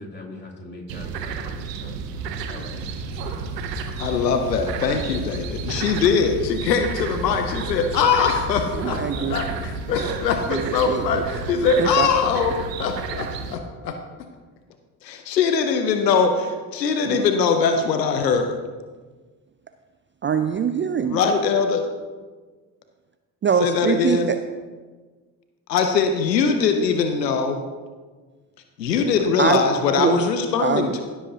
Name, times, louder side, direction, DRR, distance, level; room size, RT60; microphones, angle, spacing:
voice 1, 0.0-1.9 2.3-2.8, left 2 dB, 20° left, -4 dB, 3.3 m, -40 dB
sound 1, 0.9-13.6, right 6 dB, 85° right, 0.8 m, -32 dB
sound 2, 3.1-9.8, left 5 dB, 45° left, 1.0 m, -38 dB
voice 2, 4.0-14.0 15.0-18.6 21.0-21.9 23.6-24.3 25.7-27.6 28.8-31.0, left 5 dB, 90° left, 6 dB, 0.8 m, -22 dB
voice 3, 8.8-9.4 10.5-11.2 11.8-12.1 17.0-17.3 20.2-21.2 23.4-24.4 29.4-29.6 30.0-30.2 30.6-30.9, right 7 dB, 25° right, 9 dB, 0.5 m, -23 dB
16.0 x 7.7 x 2.8 m, 1.4 s
hypercardioid pair, 50°, 48 cm